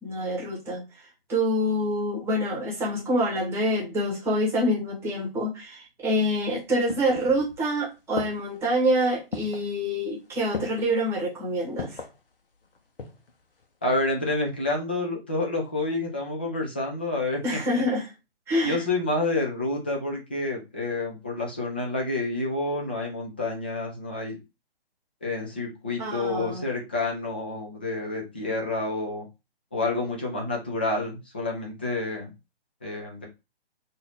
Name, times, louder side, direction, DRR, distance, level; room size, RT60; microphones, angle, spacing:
voice 1, 0.0-12.0 17.4-18.1 18.5-18.8 26.0-26.6, equal, 10° right, -4 dB, 1.3 m, -26 dB
sound 1, 6.4-7.7 8.2-8.7 9.3-9.7 10.5-11.0 11.8-12.2 12.7-13.3 13.6-13.7, left 5 dB, 65° left, 0.9 m, -36 dB
voice 2, 13.8-17.4 17.7-17.8 18.6-24.4 25.2-29.3 29.7-32.3 32.8-33.3, left 2 dB, 10° left, -2 dB, 0.4 m, -29 dB
3.8 x 2.6 x 3.5 m, 0.26 s
figure-of-eight pair, 135°, 31 cm